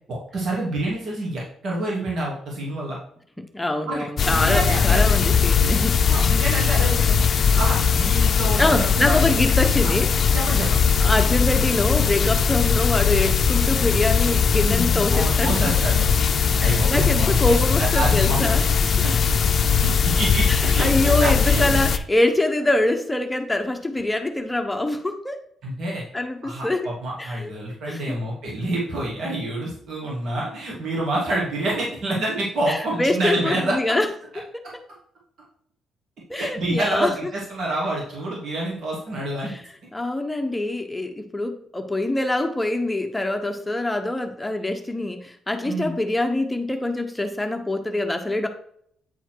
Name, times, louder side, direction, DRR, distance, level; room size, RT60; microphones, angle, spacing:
voice 1, 0.1-3.0 3.9-4.1 4.3-5.0 6.0-7.2 7.6-9.2 10.3-10.9 15.1-16.1 16.6-18.6 19.0-19.1 19.8-20.9 21.2-21.8 25.6-26.0 26.4-33.7 36.4-39.6 45.6-45.9, right 1 dB, 65° right, -4 dB, 2.7 m, -27 dB
voice 2, 3.4-6.0 6.3-6.4 8.6-10.1 11.0-15.7 16.6-18.9 20.5-25.4 26.1-26.9 27.2-27.5 27.9-28.2 32.7-34.1 34.4-34.6 36.3-37.1 39.4-39.6 39.9-48.5, left 1 dB, 10° left, 5 dB, 0.9 m, -24 dB
sound 1, 4.2-22.0, left 6 dB, 50° left, 0.5 m, -20 dB
9.2 x 4.4 x 4.6 m, 0.66 s
cardioid pair, 90°, 0 cm